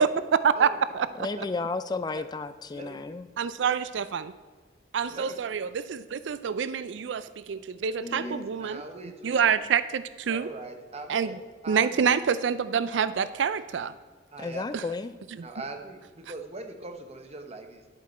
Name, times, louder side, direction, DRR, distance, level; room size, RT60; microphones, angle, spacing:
voice 1, 0.0-1.1 3.4-4.3 4.9-8.8 9.2-10.5 11.1-11.4 11.7-13.9 14.7-14.8, right 7 dB, 80° right, 14 dB, 0.4 m, -26 dB
voice 2, 1.2-3.3 8.0-8.5 14.4-15.1, left 3 dB, 20° left, 12 dB, 0.3 m, -33 dB
voice 3, 8.0-9.4 10.3-11.4 11.6-12.2 12.9-13.1 14.3-14.6 15.4-17.8, right 2 dB, 35° right, 5 dB, 1.0 m, -41 dB
10.5 x 7.8 x 4.2 m, 1.4 s
head